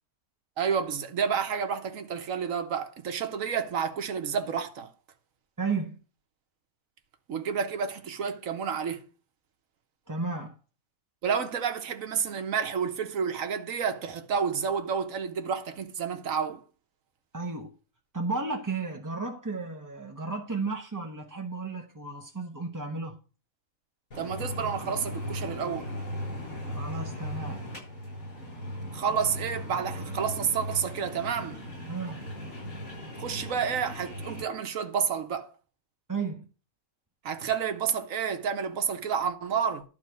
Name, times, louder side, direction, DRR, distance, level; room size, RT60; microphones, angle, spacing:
voice 1, 0.6-4.9 7.3-9.0 11.2-16.6 24.2-25.9 28.9-31.6 33.2-35.5 37.2-39.8, right 6 dB, 70° right, 1.6 m, -30 dB
voice 2, 5.6-6.0 10.1-10.6 17.3-17.7 18.1-23.2 26.7-27.6 31.9-32.2 36.1-36.5, right 4 dB, 15° right, 0.8 m, -33 dB
sound 1, 24.1-34.4, equal, 65° left, 7.4 m, -38 dB
12.5 x 4.2 x 7.8 m
omnidirectional pair, 1.5 m